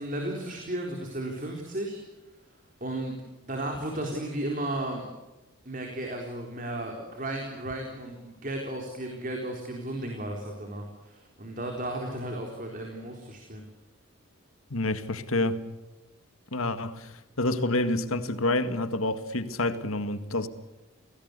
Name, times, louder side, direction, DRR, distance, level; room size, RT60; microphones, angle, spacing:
voice 1, 0.0-2.0 2.8-3.2 3.4-5.0 5.7-13.6, right 1 dB, 40° right, 4.0 m, -34 dB
voice 2, 14.7-15.6 16.5-20.5, left 2 dB, 80° left, 2.0 m, -28 dB
29.5 x 18.5 x 8.3 m
head